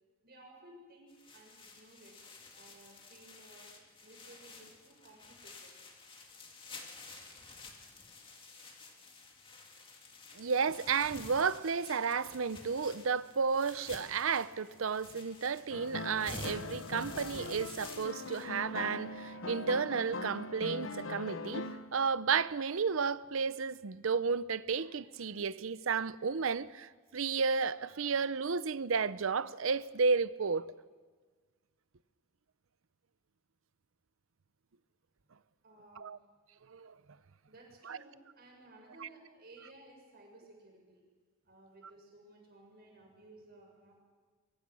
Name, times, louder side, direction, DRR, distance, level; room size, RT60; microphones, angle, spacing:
voice 1, 0.2-2.2 2.6-3.7 4.0-5.8 35.6-36.1 37.5-41.0 41.4-44.0, right 1 dB, 50° right, 6.5 m, -57 dB
sound 1, 1.1-18.5, left 3 dB, 25° left, 2.3 m, -51 dB
voice 2, 10.4-21.6 21.9-30.7 36.0-36.2 36.7-36.9 37.9-38.0 39.0-39.1, right 5 dB, 70° right, 0.6 m, -32 dB
sound 2, 15.7-22.0, left 2 dB, 65° left, 0.8 m, -41 dB
24.0 x 23.0 x 6.2 m
head